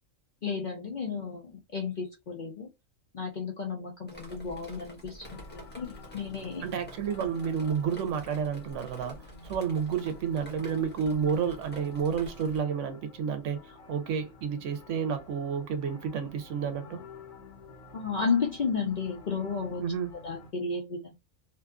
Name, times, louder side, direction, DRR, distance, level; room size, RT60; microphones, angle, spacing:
voice 1, 0.4-2.7 3.1-5.3 5.5-6.6 17.9-19.8 20.2-21.1, left 5 dB, 55° left, 0.5 m, -32 dB
Drip, 4.1-12.6, left 1 dB, 10° left, 0.7 m, -49 dB
sound 1, 5.2-20.5, left 3 dB, 70° left, 1.2 m, -50 dB
voice 2, 6.6-17.0 19.8-20.1, right 7 dB, 75° right, 0.9 m, -30 dB
2.7 x 2.2 x 2.3 m
omnidirectional pair, 1.3 m